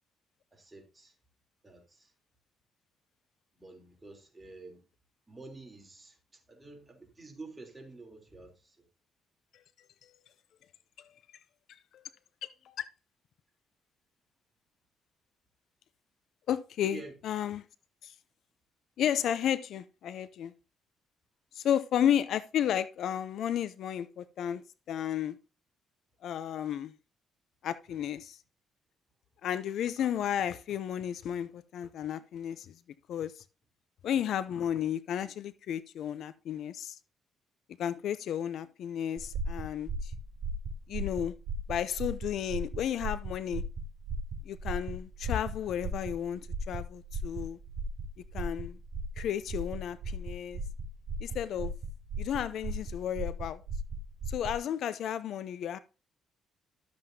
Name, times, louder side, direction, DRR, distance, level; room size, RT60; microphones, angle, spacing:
voice 1, 0.5-1.1 1.6-2.1 3.5-4.8 5.3-8.9 16.8-17.1, right 3 dB, 20° right, 3.3 m, -49 dB
voice 2, 11.7-12.0 12.4-12.9 16.5-17.6 18.0-18.1 19.0-20.5 21.5-25.4 26.2-26.9 27.6-28.4 29.4-32.8 33.1-33.4 34.0-37.0 37.8-40.1 40.9-41.3 41.7-43.6 44.4-47.6 48.3-48.8 49.2-50.6 51.2-51.7 52.2-53.6 54.3-55.8, left 10 dB, 75° left, 0.5 m, -33 dB
sound 1, 39.2-54.6, right 2 dB, 55° right, 4.1 m, -37 dB
12.5 x 7.7 x 2.8 m
cardioid pair, 90°, 0 cm